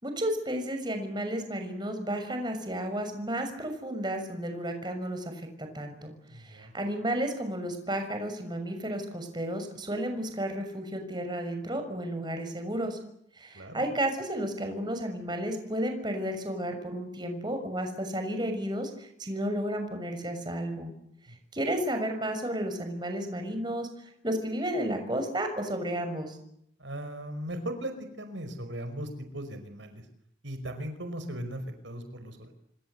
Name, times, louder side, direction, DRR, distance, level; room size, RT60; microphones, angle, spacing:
voice 1, 0.0-13.0 13.4-20.9 21.5-26.4, right 1 dB, 25° right, 6 dB, 6.3 m, -32 dB
voice 2, 6.3-6.7 13.5-13.8 21.3-21.4 26.8-30.1 30.4-32.6, right 1 dB, 80° right, 8 dB, 5.4 m, -38 dB
27.5 x 25.5 x 8.2 m, 0.72 s
head